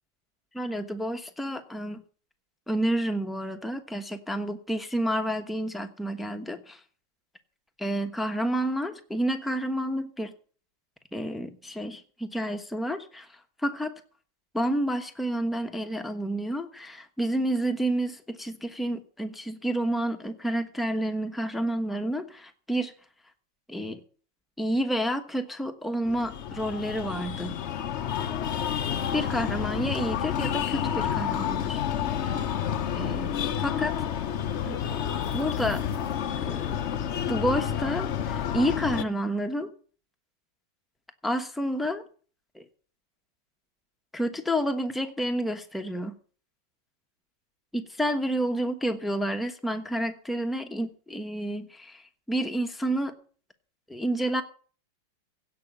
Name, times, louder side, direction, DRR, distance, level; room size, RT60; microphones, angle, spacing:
voice 1, 0.5-2.0 2.7-6.8 7.8-10.3 11.1-13.9 14.5-22.9 23.7-24.0 24.6-27.5 29.1-31.8 32.9-33.9 34.6-34.8 35.3-35.8 36.4-36.8 37.3-39.7 41.2-42.0 42.5-42.6 44.1-46.1 47.7-53.1 53.9-54.4, equal, ahead, 6 dB, 0.6 m, -29 dB
Breathing, 26.0-39.0, left 9 dB, 85° left, 0.6 m, -30 dB
sound 1, 34.9-36.4, right 2 dB, 65° right, 5.6 m, -57 dB
16.5 x 6.1 x 8.2 m, 0.42 s
omnidirectional pair, 2.2 m